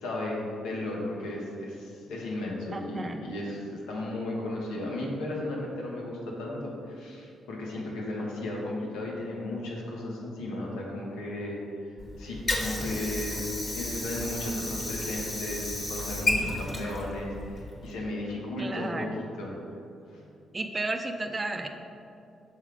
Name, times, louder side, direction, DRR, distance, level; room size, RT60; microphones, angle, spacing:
voice 1, 0.0-11.9 12.2-13.4 13.7-19.1 19.4-19.5 20.1-20.3, left 1 dB, 85° left, -3 dB, 1.2 m, -35 dB
voice 2, 2.7-3.2 18.6-19.2 20.5-21.7, right 2 dB, 30° right, 5 dB, 0.6 m, -33 dB
Water / Sink (filling or washing), 12.0-18.0, left 1 dB, 35° left, 1.3 m, -33 dB
6.5 x 3.6 x 4.9 m, 2.6 s
supercardioid pair, 60°, 0 cm